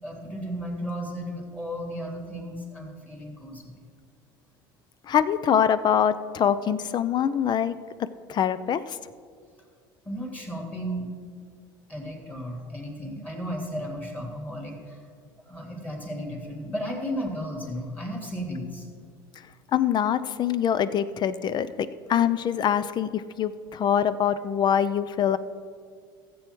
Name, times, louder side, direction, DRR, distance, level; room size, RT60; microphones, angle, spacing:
voice 1, 0.0-3.8 10.0-11.1 11.9-15.0 15.5-18.9, equal, 15° left, 0 dB, 3.1 m, -34 dB
voice 2, 5.1-7.7 8.3-9.0 19.7-25.4, left 9 dB, 40° left, 15 dB, 0.6 m, -24 dB
14.5 x 7.9 x 4.6 m, 2.1 s
hypercardioid pair, 85°, 11 cm